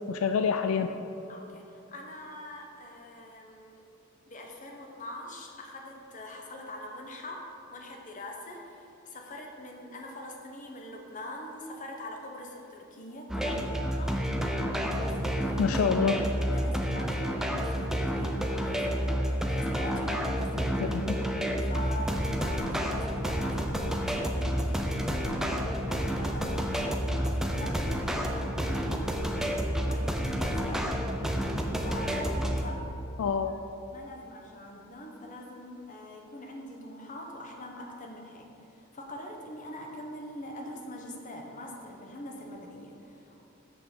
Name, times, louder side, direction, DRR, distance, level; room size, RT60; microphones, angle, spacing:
voice 1, 0.1-0.9 15.6-16.2 20.8-21.1 33.2-33.6, left 6 dB, 75° left, 7 dB, 0.3 m, -27 dB
voice 2, 1.3-3.8 4.3-7.4 7.7-14.2 14.8-16.0 16.4-21.0 21.4-25.6 25.9-29.5 29.9-31.0 31.8-32.8 33.9-43.4, left 1 dB, 35° left, 1 dB, 1.0 m, -43 dB
sound 1, 13.3-32.6, equal, ahead, 0.5 m, -30 dB
6.2 x 5.7 x 6.7 m, 2.9 s
head